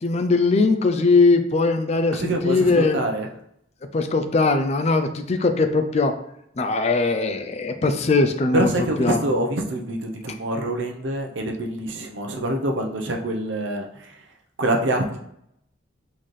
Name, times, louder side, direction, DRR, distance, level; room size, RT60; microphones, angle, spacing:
voice 1, 0.0-3.0 3.9-6.1 6.6-8.7 9.0-9.2, left 3 dB, 35° left, 7 dB, 0.4 m, -20 dB
voice 2, 2.1-3.3 8.5-14.2 14.6-15.2, right 1 dB, 70° right, 2 dB, 0.7 m, -25 dB
4.1 x 3.9 x 3.2 m, 0.75 s
head